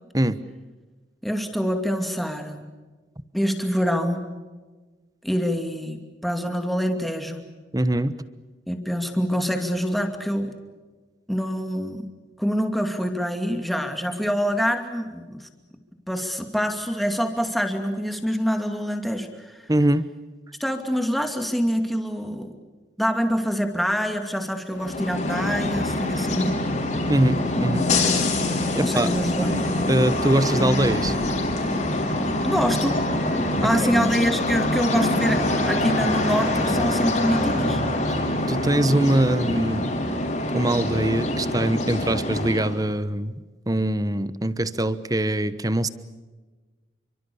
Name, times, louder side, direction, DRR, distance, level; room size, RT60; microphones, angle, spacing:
voice 1, 1.2-2.6 3.3-4.3 5.2-7.4 8.7-10.5 11.3-12.1 12.4-15.5 16.1-19.7 20.6-22.5 23.0-26.6 28.8-29.6 30.3-30.4 32.4-33.0 33.6-37.8, equal, ahead, 5 dB, 2.6 m, -25 dB
voice 2, 7.7-8.1 19.7-20.1 27.1-27.9 28.8-29.1 29.9-31.2 33.8-33.9 38.1-39.9 40.5-43.4 43.7-45.9, right 1 dB, 20° right, 14 dB, 1.1 m, -23 dB
sound 1, 24.7-42.8, left 1 dB, 40° left, 5.6 m, -24 dB
29.0 x 24.5 x 7.1 m, 1.3 s
head